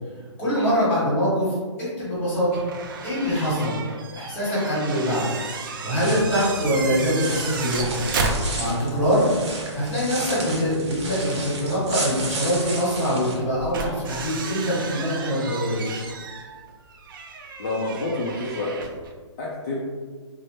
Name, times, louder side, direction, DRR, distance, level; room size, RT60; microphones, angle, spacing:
voice 1, 0.4-1.5 1.8-2.6 3.0-3.8 4.1-5.3 5.8-8.1 8.5-9.3 9.7-15.8, equal, 15° left, -9 dB, 1.2 m, -24 dB
sound 1, 2.5-9.0 9.3-9.4 11.5-11.6 13.4-19.1, right 4 dB, 45° right, 0.4 m, -33 dB
sound 2, 5.9-13.3, right 2 dB, 60° right, 0.8 m, -33 dB
voice 2, 17.6-18.7 19.4-19.8, left 2 dB, 35° left, -4 dB, 0.4 m, -29 dB
3.0 x 2.0 x 3.1 m, 1.5 s
hypercardioid pair, 160°, 16 cm